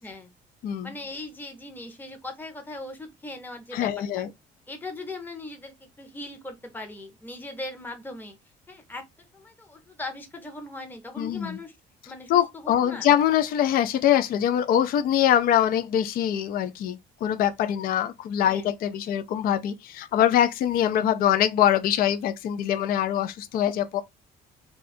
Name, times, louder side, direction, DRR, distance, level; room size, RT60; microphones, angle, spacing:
voice 1, 0.8-4.3 4.7-8.4 8.7-11.8 12.1-13.1 18.4-18.7, left 2 dB, 10° left, 0.8 m, -39 dB
voice 2, 3.7-4.3 11.2-11.6 12.3-24.0, left 10 dB, 60° left, 0.4 m, -23 dB
2.6 x 2.3 x 4.1 m
cardioid pair, 110°, 17 cm